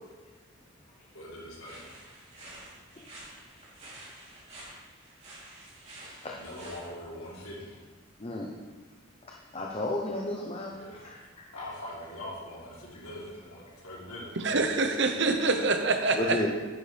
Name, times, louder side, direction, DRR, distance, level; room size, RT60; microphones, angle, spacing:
voice 1, 1.1-1.9 4.1-4.2 6.3-7.8 10.7-14.5 15.2-15.7, left 1 dB, 85° left, -6 dB, 3.6 m, -43 dB
sound 1, 1.6-6.9, right 1 dB, 30° right, 3.3 m, -49 dB
voice 2, 6.0-6.4 8.2-8.6 9.3-11.2 16.1-16.5, left 1 dB, 30° left, -1 dB, 0.8 m, -33 dB
voice 3, 14.4-16.5, right 3 dB, 55° right, 6 dB, 1.0 m, -25 dB
10.5 x 9.6 x 3.4 m, 1.3 s
head